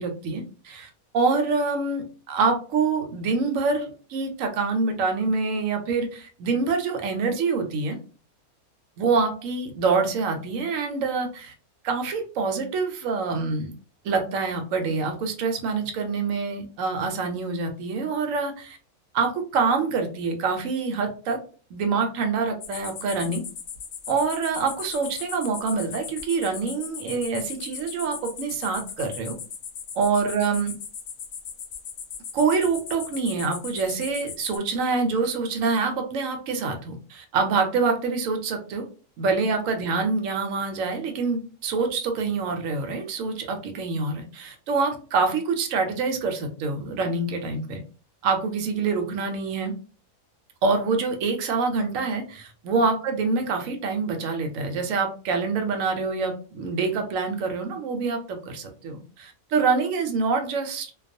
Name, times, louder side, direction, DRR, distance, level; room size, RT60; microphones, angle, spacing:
voice 1, 0.0-8.0 9.0-11.5 11.8-13.7 14.0-18.8 19.1-21.4 21.7-23.4 24.1-29.3 30.0-30.7 32.3-38.8 39.2-47.8 48.2-49.7 50.6-60.9, right 4 dB, 70° right, 5 dB, 0.9 m, -26 dB
sound 1, 22.6-34.6, left 7 dB, 70° left, 0.9 m, -38 dB
2.3 x 2.3 x 2.5 m, 0.38 s
omnidirectional pair, 1.5 m